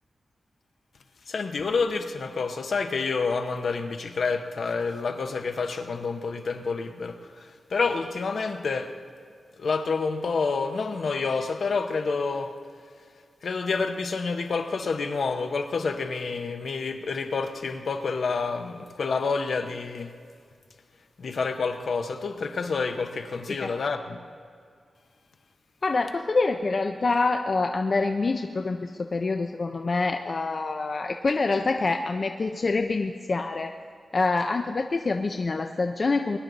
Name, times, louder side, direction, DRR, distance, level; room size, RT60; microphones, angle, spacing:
voice 1, 1.3-8.9 9.6-12.5 13.4-20.1 21.2-24.2, left 4 dB, 60° left, 0.9 m, -28 dB
voice 2, 25.8-33.7 34.1-36.4, left 3 dB, 35° left, 0.5 m, -26 dB
21.5 x 11.0 x 4.0 m
wide cardioid pair, 160°, 0 cm